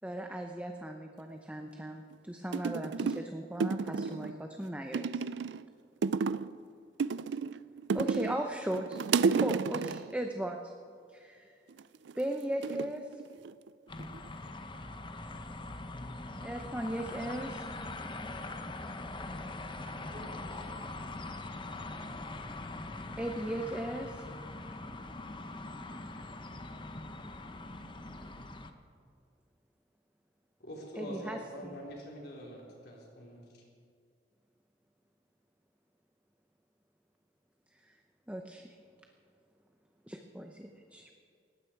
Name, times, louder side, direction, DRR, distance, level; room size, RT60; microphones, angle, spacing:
voice 1, 0.0-5.2 7.9-9.0 9.3-10.6 11.1-11.5 12.2-13.1 16.4-17.6 23.2-24.2 31.0-31.8 38.3-38.7 40.1-41.1, right 1 dB, 5° right, 3 dB, 0.8 m, -37 dB
sound 1, 2.1-2.2 2.5-3.3 3.6-4.4 4.9-5.6 6.0-6.6 7.0-8.4 8.7-10.1 11.7-12.1 12.6-13.7 14.0-14.5, right 5 dB, 75° right, 0.4 m, -31 dB
sound 2, 13.9-28.7, left 2 dB, 25° left, 0.9 m, -42 dB
voice 2, 19.8-21.3, equal, 50° right, -2 dB, 5.3 m, -54 dB
voice 3, 30.6-33.5, equal, 60° left, -3 dB, 4.1 m, -44 dB
19.5 x 15.5 x 4.7 m, 2.2 s
head